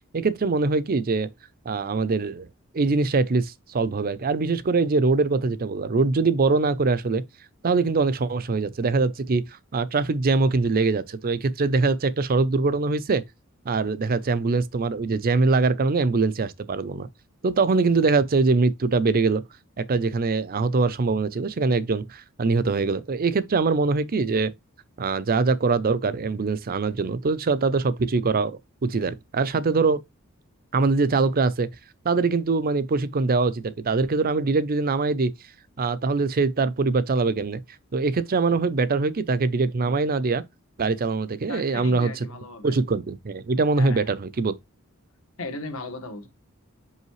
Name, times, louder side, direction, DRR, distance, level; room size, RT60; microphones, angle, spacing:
voice 1, 0.1-1.3 1.7-2.5 2.7-7.2 7.6-13.2 13.7-17.1 17.4-19.4 19.8-24.5 25.0-30.0 30.7-31.7 32.0-35.3 35.8-37.6 37.9-40.4 40.8-42.2 42.6-44.6, right 3 dB, 45° right, 0.5 m, -23 dB
voice 2, 41.5-42.7 43.8-44.1 45.4-46.3, left 2 dB, 70° left, 1.5 m, -36 dB
5.5 x 5.5 x 3.1 m
head